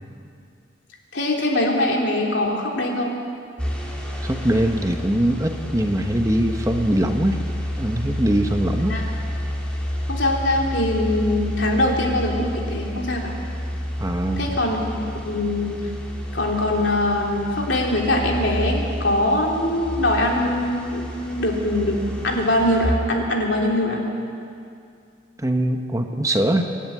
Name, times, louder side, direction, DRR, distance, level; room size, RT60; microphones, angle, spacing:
voice 1, 1.1-3.1 8.9-9.1 10.1-13.3 14.4-15.9 16.3-24.0, left 1 dB, 70° left, -1 dB, 3.4 m, -22 dB
sound 1, 3.6-22.9, equal, 5° left, 2.8 m, -30 dB
voice 2, 4.2-7.4 7.8-9.0 14.0-14.5 25.4-26.6, right 1 dB, 15° right, 5 dB, 1.0 m, -22 dB
26.0 x 11.0 x 9.6 m, 2.4 s
head